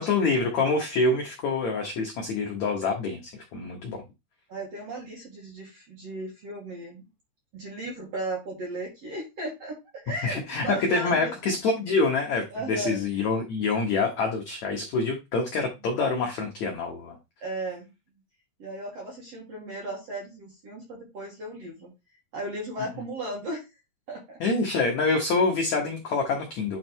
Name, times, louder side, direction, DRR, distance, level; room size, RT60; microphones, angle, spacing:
voice 1, 0.0-4.0 10.2-17.2 24.4-26.8, left 3 dB, 80° left, 1 dB, 1.6 m, -26 dB
voice 2, 4.5-7.0 7.5-9.8 10.0-11.3 12.5-13.0 17.4-17.9 18.6-21.9 22.3-23.6 24.1-24.4, right 2 dB, 55° right, -1 dB, 1.9 m, -36 dB
9.2 x 3.2 x 4.5 m, 0.24 s
omnidirectional pair, 5.0 m